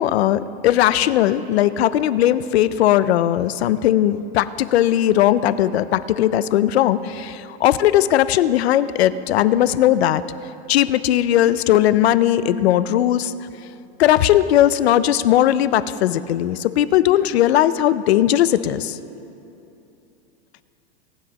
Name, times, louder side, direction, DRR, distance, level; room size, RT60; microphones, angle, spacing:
voice 1, 0.0-10.2 10.7-13.3 14.0-19.0, left 12 dB, 80° left, 15 dB, 0.6 m, -18 dB
19.0 x 9.4 x 2.9 m, 2.8 s
supercardioid pair, 170°, 31 cm